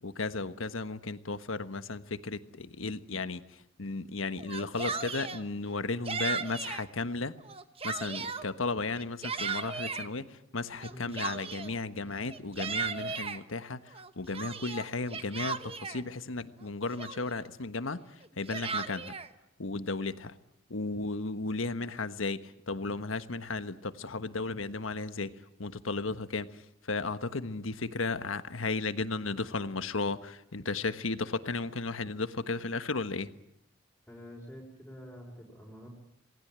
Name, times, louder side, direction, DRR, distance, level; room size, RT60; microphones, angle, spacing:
voice 1, 0.0-7.3 7.8-19.1 19.6-20.4 20.7-33.3, left 3 dB, 85° left, 11 dB, 1.4 m, -35 dB
Yell, 4.4-5.4 6.1-6.9 7.4-8.5 8.9-10.1 10.8-11.8 12.3-13.4 13.9-16.0 16.6-16.7 17.0-17.5 18.2-19.3, right 5 dB, 30° right, 1.2 m, -36 dB
voice 2, 34.1-35.9, equal, 5° left, -3 dB, 5.2 m, -47 dB
27.5 x 19.5 x 9.0 m, 0.78 s
head